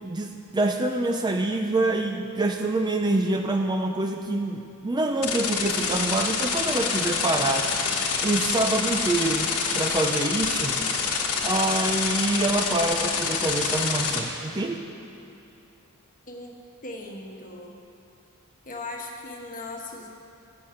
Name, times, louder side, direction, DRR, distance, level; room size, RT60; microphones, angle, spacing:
voice 1, 0.0-7.7 8.2-10.8 11.4-14.8, right 2 dB, 20° right, 4 dB, 0.5 m, -26 dB
sound 1, 5.2-14.2, left 5 dB, 80° left, 1.2 m, -26 dB
voice 2, 16.3-17.8 18.6-20.1, left 2 dB, 40° left, 1 dB, 1.2 m, -38 dB
15.0 x 6.4 x 5.7 m, 2.7 s
head